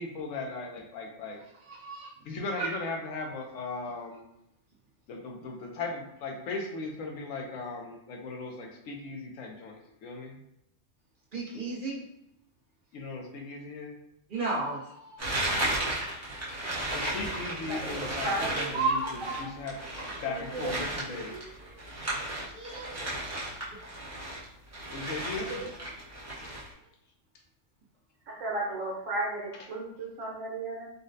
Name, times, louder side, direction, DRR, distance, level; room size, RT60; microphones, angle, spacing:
voice 1, 0.0-1.4 2.3-4.2 5.1-10.4 12.9-14.0 16.9-19.8 20.2-21.4 24.9-25.5, left 3 dB, 90° left, 1 dB, 1.0 m, -37 dB
voice 2, 1.7-2.1 2.6-2.7 11.3-12.0 14.3-15.2 18.7-19.5 21.3-21.4 21.7-21.8 22.5-23.2 25.5-25.7, right 3 dB, 45° right, -4 dB, 0.9 m, -33 dB
Brown Paper bag, 15.2-24.4 24.7-26.7, right 1 dB, 15° right, 0.6 m, -34 dB
voice 3, 17.7-18.8 20.0-20.7 28.3-30.9, right 2 dB, 90° right, -3 dB, 1.3 m, -35 dB
3.9 x 2.1 x 2.6 m, 0.79 s
omnidirectional pair, 1.3 m